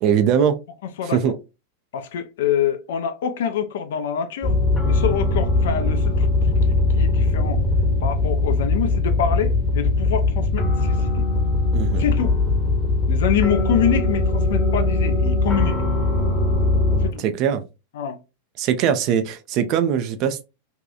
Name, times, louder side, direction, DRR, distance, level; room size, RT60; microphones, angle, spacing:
voice 1, 0.0-0.6 1.1-1.3 11.7-12.0 17.2-17.6 18.6-20.4, right 8 dB, 40° right, 0.3 m, -21 dB
voice 2, 1.9-4.5 4.9-7.6 8.0-11.3 12.0-12.4 13.1-15.8 17.0-17.2 17.9-18.2, left 8 dB, 55° left, 0.4 m, -26 dB
sound 1, 4.4-17.1, left 2 dB, 15° left, 0.8 m, -20 dB
2.7 x 2.3 x 2.2 m
figure-of-eight pair, 90°, 0 cm